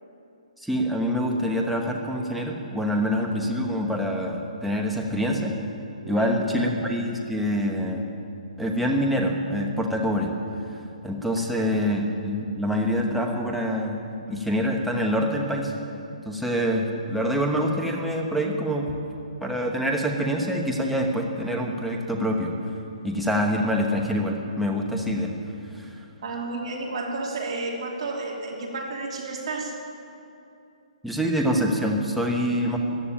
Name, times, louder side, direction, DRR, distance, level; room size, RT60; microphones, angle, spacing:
voice 1, 0.6-5.6 6.1-8.1 8.6-10.3 11.0-14.0 14.3-15.7 16.2-18.9 19.4-22.5 23.0-25.3 25.7-25.9 31.0-32.8, equal, ahead, 0 dB, 1.2 m, -25 dB
voice 2, 26.2-29.7, right 3 dB, 45° right, -1 dB, 2.9 m, -31 dB
14.5 x 11.0 x 8.6 m, 2.7 s
hypercardioid pair, 160°, 4 cm